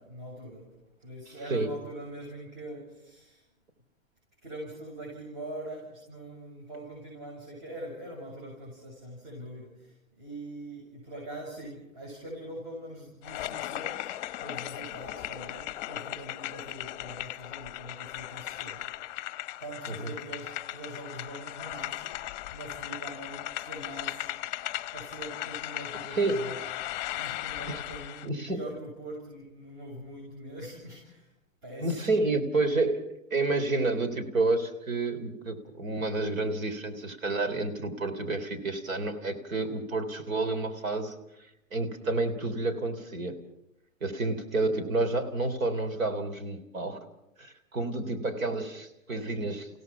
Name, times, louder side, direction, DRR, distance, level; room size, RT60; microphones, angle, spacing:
voice 1, 0.0-3.5 4.4-19.2 19.6-22.2 22.5-24.3 24.9-31.3 31.6-32.2, right 1 dB, 40° right, -2 dB, 7.3 m, -43 dB
sound 1, 13.2-28.3, left 15 dB, 35° left, 0.7 m, -37 dB
voice 2, 28.2-28.6 31.8-33.0 33.3-41.1 41.7-43.4 44.0-47.0 47.4-49.7, right 3 dB, 75° right, 8 dB, 3.6 m, -29 dB
30.0 x 17.0 x 6.0 m, 0.83 s
hypercardioid pair, 140°, 40 cm